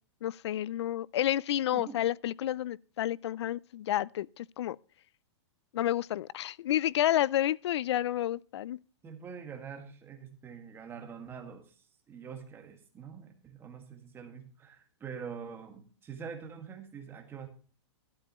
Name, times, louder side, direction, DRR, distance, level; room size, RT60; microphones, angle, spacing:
voice 1, 0.2-4.8 5.7-8.8, left 12 dB, 70° left, 0.4 m, -30 dB
voice 2, 9.0-11.7 12.1-17.5, right 6 dB, 15° right, 1.8 m, -45 dB
12.5 x 10.5 x 3.0 m
hypercardioid pair, 155°, 15 cm